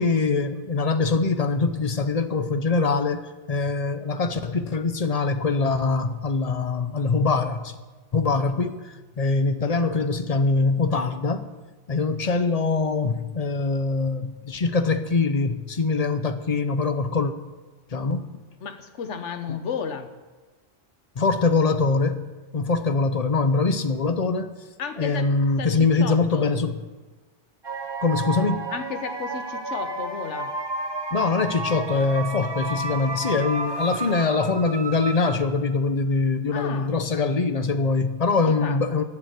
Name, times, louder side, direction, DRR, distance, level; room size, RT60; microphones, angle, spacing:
voice 1, 0.0-7.8 8.1-11.5 11.9-17.3 17.9-18.2 19.5-19.6 21.2-22.2 22.5-24.5 25.0-26.8 28.0-28.6 31.1-39.0, left 4 dB, 40° left, 10 dB, 0.7 m, -23 dB
voice 2, 18.6-20.1 24.8-25.3 25.6-26.5 28.7-30.5 34.1-34.2 36.5-36.9 38.4-39.0, left 6 dB, 75° left, 9 dB, 1.3 m, -33 dB
sound 1, 27.6-35.7, right 3 dB, 25° right, 0.7 m, -32 dB
13.0 x 7.2 x 8.2 m, 1.2 s
omnidirectional pair, 1.2 m